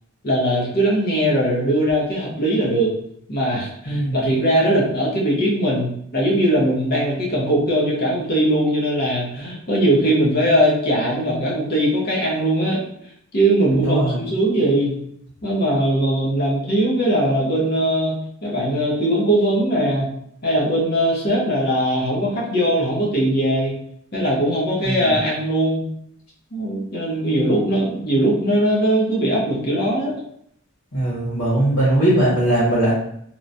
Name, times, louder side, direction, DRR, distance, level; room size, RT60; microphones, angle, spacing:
voice 1, 0.2-2.9 3.3-12.8 13.3-15.0 15.4-18.2 18.4-20.1 20.4-23.8 24.1-25.8 26.5-30.2, right 1 dB, 45° left, -3 dB, 0.7 m, -20 dB
voice 2, 3.8-4.2 13.7-14.2 24.8-25.0 30.9-32.9, right 1 dB, 80° left, -10 dB, 1.3 m, -19 dB
3.0 x 2.1 x 2.5 m, 0.69 s
head